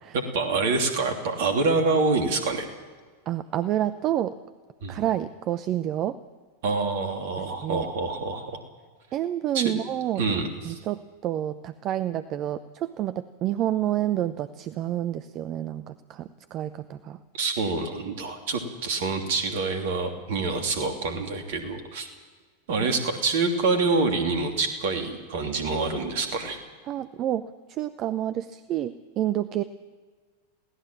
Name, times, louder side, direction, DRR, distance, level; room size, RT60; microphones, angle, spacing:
voice 1, 0.1-2.7 4.8-5.0 6.6-8.6 9.5-9.7 10.2-10.8 17.3-22.1 22.7-26.6, right 3 dB, 55° right, 5 dB, 3.0 m, -26 dB
voice 2, 3.3-4.4 4.9-6.2 7.6-7.9 9.1-10.2 10.6-17.2 22.8-22.9 26.9-29.6, right 12 dB, 35° right, 14 dB, 0.7 m, -29 dB
22.5 x 17.5 x 7.5 m, 1.5 s
figure-of-eight pair, 90°, 0 cm